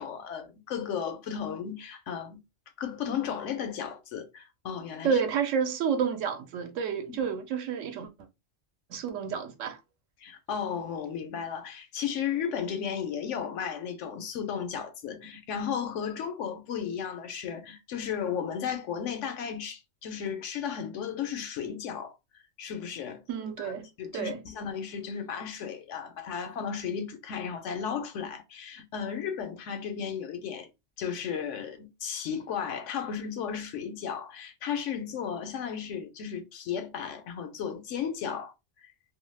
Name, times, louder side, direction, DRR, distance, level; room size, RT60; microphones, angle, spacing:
voice 1, 0.0-2.4 2.8-5.2 7.1-7.3 10.2-22.1 22.6-23.2 23.6-23.7 24.0-30.7 31.0-38.5, left 7 dB, 80° left, 0.9 m, -34 dB
voice 2, 5.0-8.1 8.9-9.8 23.3-23.9 24.1-24.4, right 7 dB, 80° right, 1.0 m, -30 dB
2.6 x 2.2 x 3.2 m
omnidirectional pair, 1.3 m